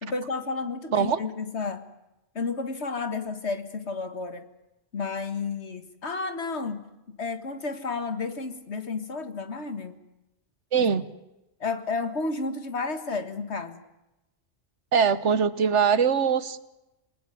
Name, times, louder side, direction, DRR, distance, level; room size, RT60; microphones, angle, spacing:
voice 1, 0.0-1.8 2.4-4.5 4.9-10.0 10.8-10.9 11.6-13.8, left 4 dB, 65° left, 9 dB, 2.0 m, -32 dB
voice 2, 10.7-11.1 14.9-16.6, right 6 dB, 75° right, 15 dB, 1.4 m, -22 dB
27.5 x 19.5 x 9.3 m, 0.96 s
omnidirectional pair, 1.2 m